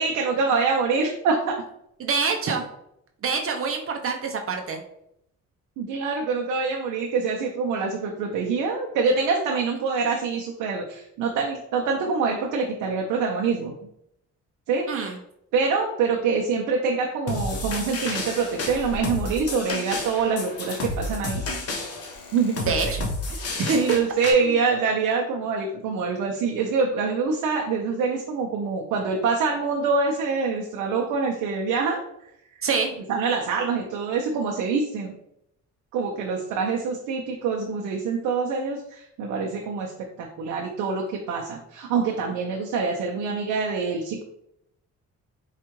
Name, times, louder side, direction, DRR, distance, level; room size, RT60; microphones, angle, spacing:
voice 1, 0.0-1.5 5.8-13.7 14.7-15.2 15.5-21.4 22.3-22.9 23.7-32.0 33.1-35.1 35.9-39.9 40.2-44.2, right 4 dB, 90° right, 0 dB, 0.6 m, -25 dB
voice 2, 2.0-2.7 3.2-4.8 14.9-15.2 22.7-23.1 23.6-23.8 24.4-24.5 32.6-32.9, right 5 dB, 45° right, 4 dB, 0.5 m, -26 dB
sound 1, 17.3-24.3, left 2 dB, 50° left, 0.9 m, -31 dB
4.4 x 2.4 x 3.0 m, 0.77 s
cardioid pair, 90°, 30 cm